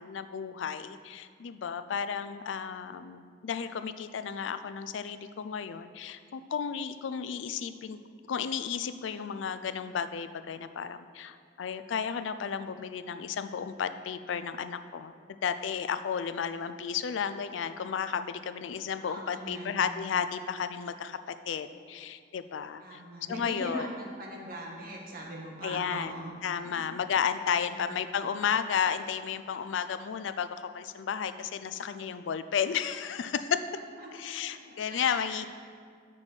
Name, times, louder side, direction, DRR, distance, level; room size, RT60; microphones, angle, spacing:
voice 1, 0.0-8.0 8.3-23.0 23.3-23.9 25.6-33.6 34.1-35.5, left 7 dB, 85° left, 11 dB, 0.4 m, -33 dB
voice 2, 19.0-19.8 22.8-26.8 27.7-28.0 34.0-34.6 34.9-35.5, right 1 dB, 50° right, -2 dB, 1.4 m, -41 dB
7.9 x 6.1 x 4.4 m, 2.1 s
head